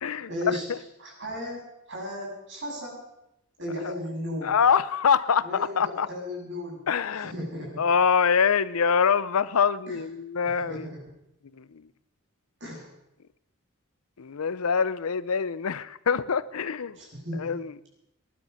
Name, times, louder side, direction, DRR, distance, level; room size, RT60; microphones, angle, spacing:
voice 1, 0.3-0.7 1.0-1.6 1.9-3.0 3.6-4.5 5.4-6.8 7.1-7.8 9.9-10.0 10.4-11.0 12.6-12.9 17.0-17.5, left 1 dB, 55° right, -3 dB, 7.6 m, -35 dB
voice 2, 4.4-6.1 6.9-7.3 7.8-10.9 11.5-11.8 14.2-17.0 17.4-17.7, left 6 dB, 90° left, 17 dB, 0.6 m, -24 dB
21.0 x 11.0 x 5.7 m, 0.86 s
head